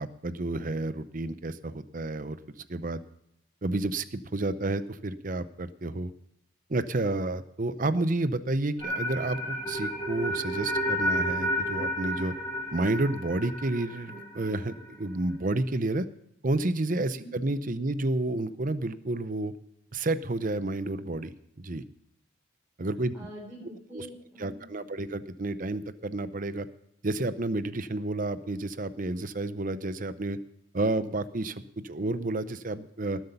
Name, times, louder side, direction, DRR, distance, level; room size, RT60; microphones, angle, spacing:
voice 1, 0.0-3.0 3.6-6.1 6.7-12.3 12.7-16.1 16.4-19.5 19.9-21.3 21.6-21.8 22.8-23.1 23.9-24.1 24.4-26.7 27.0-30.4 30.7-33.2, right 2 dB, 45° right, 13 dB, 0.7 m, -30 dB
sound 1, 8.8-14.9, equal, 15° left, 3.7 m, -31 dB
voice 2, 17.1-17.6 23.1-24.9, equal, 10° right, -7 dB, 4.0 m, -45 dB
19.5 x 8.0 x 5.7 m, 0.79 s
head